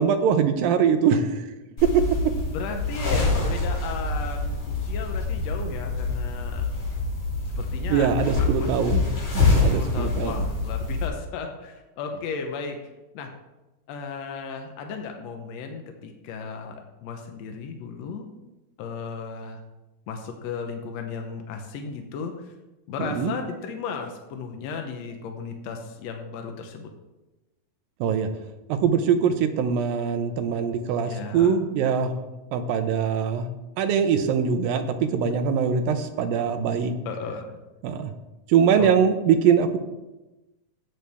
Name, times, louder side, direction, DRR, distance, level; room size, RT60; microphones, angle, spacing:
voice 1, 0.0-1.4 7.9-9.1 9.3-10.4 23.0-23.3 28.0-28.3 28.7-32.2 32.5-33.5 33.8-36.9 37.8-38.1 38.5-39.8, right 7 dB, 80° right, 7 dB, 2.6 m, -22 dB
sound 1, 1.8-11.1, left 3 dB, 45° left, 4.9 m, -26 dB
voice 2, 2.5-6.7 7.6-8.1 8.4-8.8 9.6-12.8 13.1-13.3 13.9-18.3 18.8-19.6 20.1-22.5 22.9-26.9 31.1-31.6 37.0-37.6 38.8-38.9, left 5 dB, 75° left, 4 dB, 1.6 m, -35 dB
13.5 x 9.2 x 3.5 m, 1.0 s
omnidirectional pair, 4.1 m